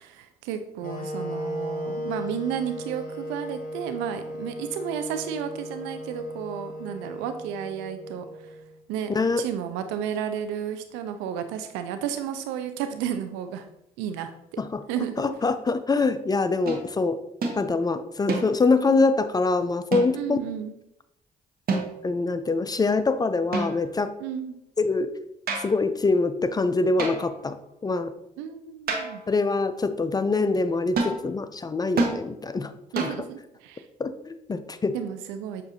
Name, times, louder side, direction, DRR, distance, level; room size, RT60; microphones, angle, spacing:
voice 1, 0.0-8.5 8.9-13.7 14.0-14.6 14.9-15.3 20.1-20.7 24.2-24.5 28.4-29.2 32.9-33.9 34.9-35.6, right 9 dB, 75° right, 9 dB, 0.4 m, -32 dB
sound 1, 0.8-8.8, equal, 50° left, 0.9 m, -36 dB
voice 2, 9.1-9.4 14.6-14.8 15.2-17.2 17.5-20.4 22.0-24.1 24.8-25.1 25.6-27.6 27.8-28.1 29.3-33.1 34.0-34.9, left 3 dB, 20° left, 11 dB, 0.4 m, -24 dB
sound 2, 16.7-16.9 17.4-17.6 18.3-18.8 19.9-20.4 21.7-22.2 23.5-24.1 25.5-25.8 27.0-27.4 28.9-29.3 31.0-31.2 32.0-32.2 33.0-33.3, right 3 dB, 55° right, 0.8 m, -29 dB
6.6 x 2.5 x 2.7 m, 0.80 s
hypercardioid pair, 45°, 19 cm